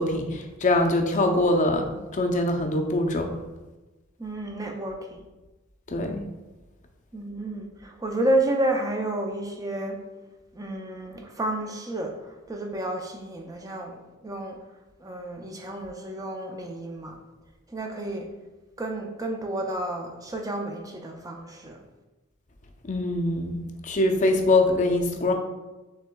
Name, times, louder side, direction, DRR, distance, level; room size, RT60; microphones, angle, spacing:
voice 1, 0.0-3.3 5.9-6.2 22.9-25.3, left 2 dB, 35° left, 4 dB, 0.5 m, -23 dB
voice 2, 4.2-5.2 7.1-10.0 10.5-14.0 14.2-14.6 15.0-17.2 17.7-18.3 18.8-21.8, right 1 dB, 15° right, 2 dB, 0.5 m, -30 dB
6.4 x 3.4 x 2.2 m, 1.1 s
head